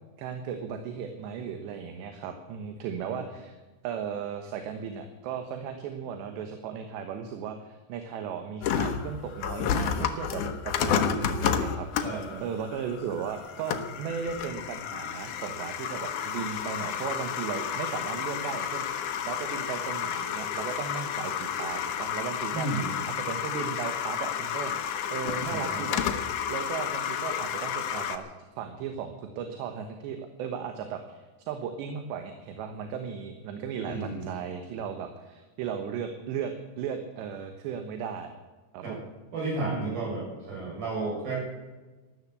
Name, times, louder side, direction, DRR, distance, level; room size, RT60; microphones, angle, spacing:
voice 1, 0.2-3.6 3.8-22.7 23.1-24.8 25.1-28.3 28.6-38.3 38.7-39.0 39.7-40.2, right 7 dB, 75° right, 7 dB, 3.3 m, -36 dB
sound 1, 8.6-28.2, left 8 dB, 90° left, 1.7 m, -31 dB
voice 2, 12.0-12.4 22.5-22.9 25.5-25.8 33.8-34.2 38.8-39.0 39.3-41.4, right 3 dB, 50° right, -3 dB, 8.8 m, -32 dB
13.5 x 13.0 x 8.3 m, 1.2 s
omnidirectional pair, 5.3 m